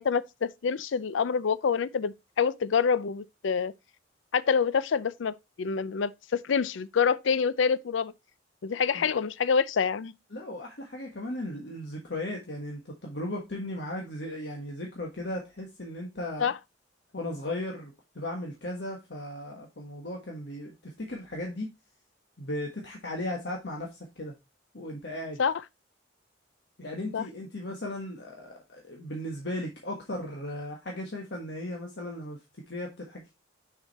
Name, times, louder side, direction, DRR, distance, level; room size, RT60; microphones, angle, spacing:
voice 1, 0.0-3.7 4.3-8.1 8.6-10.1 16.4-16.6 25.4-25.5 27.1-27.2, left 6 dB, 80° left, 0.4 m, -27 dB
voice 2, 10.3-16.5 17.1-21.7 22.4-24.3 24.7-25.4 26.8-32.4 32.7-33.3, left 1 dB, 60° left, 1.4 m, -36 dB
6.5 x 4.9 x 4.0 m
head